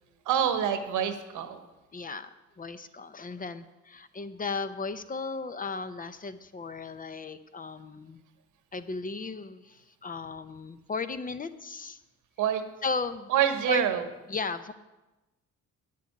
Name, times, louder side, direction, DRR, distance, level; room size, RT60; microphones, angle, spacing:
voice 1, 0.2-1.6 12.4-12.6 13.3-14.1, right 9 dB, 90° right, 9 dB, 1.3 m, -26 dB
voice 2, 1.9-2.3 2.6-8.2 8.7-12.0 12.8-13.3 13.7-13.8 14.3-14.7, left 4 dB, 30° left, 12 dB, 0.7 m, -35 dB
9.2 x 7.7 x 8.6 m, 1.1 s
cardioid pair, 90°, 30 cm